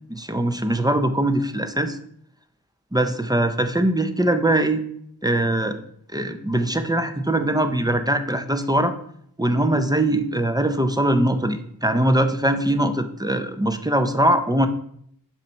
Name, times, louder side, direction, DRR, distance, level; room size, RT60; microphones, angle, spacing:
voice 1, 0.1-2.0 2.9-4.8 5.2-5.8 6.1-8.9 9.4-14.7, right 1 dB, 10° right, 8 dB, 0.5 m, -21 dB
6.8 x 3.1 x 5.5 m, 0.66 s
wide cardioid pair, 65°, 37 cm